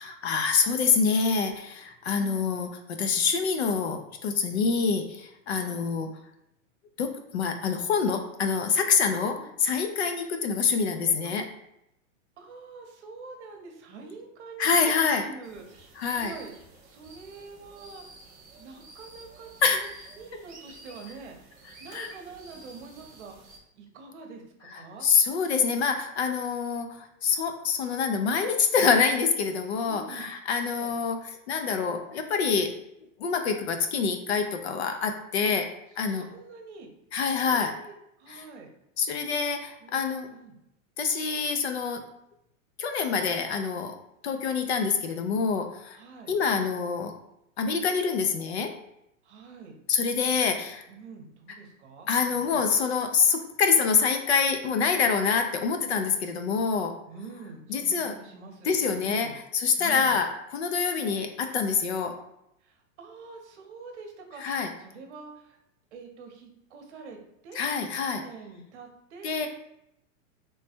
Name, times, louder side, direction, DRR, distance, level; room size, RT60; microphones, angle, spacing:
voice 1, 0.0-2.7 3.0-6.1 7.0-11.4 14.6-15.2 16.0-16.3 19.6-19.8 21.9-22.1 25.0-32.7 33.2-35.6 36.0-36.3 37.1-37.7 38.3-38.4 39.0-40.3 41.0-42.0 42.8-43.9 44.2-46.0 46.3-47.1 47.6-48.7 49.9-50.8 52.1-56.9 57.7-58.1 58.6-59.3 59.5-60.3 60.5-62.1 64.4-64.7 67.5-68.2 69.2-69.5, left 5 dB, 55° left, 6 dB, 0.5 m, -26 dB
voice 2, 2.1-2.5 5.5-5.8 9.3-9.5 11.2-11.4 12.4-16.5 16.8-18.2 18.5-23.3 23.7-25.1 29.8-30.2 30.6-30.9 35.4-35.5 36.1-36.9 37.4-38.7 39.8-40.0 40.3-40.6 45.9-46.4 49.2-49.8 50.4-50.6 50.9-52.6 57.1-59.4 59.8-60.2 62.6-65.6 65.9-69.5, right 4 dB, 55° right, 3 dB, 0.9 m, -46 dB
sound 1, 15.4-23.6, right 2 dB, 20° right, 0.7 m, -51 dB
3.1 x 2.2 x 4.2 m, 0.81 s
supercardioid pair, 180°, 41 cm